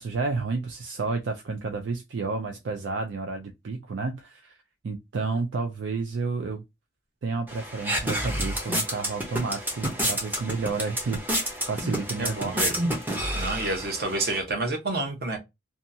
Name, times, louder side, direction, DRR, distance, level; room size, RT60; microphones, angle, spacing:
voice 1, 0.0-4.6 4.8-6.6 7.2-12.7, right 4 dB, 75° right, 0.4 m, -31 dB
sound 1, 7.5-14.4, equal, 10° right, 0.6 m, -29 dB
voice 2, 12.2-12.8 13.3-15.4, right 2 dB, 55° right, 0.9 m, -29 dB
2.8 x 2.3 x 2.6 m
head